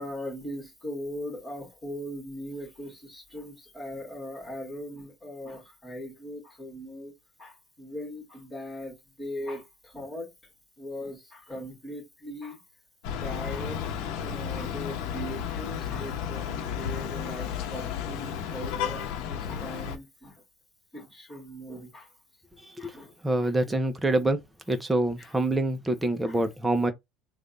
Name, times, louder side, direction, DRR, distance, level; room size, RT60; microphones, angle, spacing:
voice 1, 0.0-7.1 7.4-10.3 10.8-12.6 13.1-20.3 20.9-22.1 22.8-23.1 23.4-23.5 25.2-25.3 26.2-26.4, left 1 dB, 15° left, 1.7 m, -39 dB
sound 1, 13.0-20.0, left 8 dB, 70° left, 0.9 m, -33 dB
voice 2, 23.2-24.4 24.7-26.9, right 2 dB, 10° right, 0.7 m, -25 dB
3.3 x 2.3 x 3.9 m
cardioid pair, 130°, 0 cm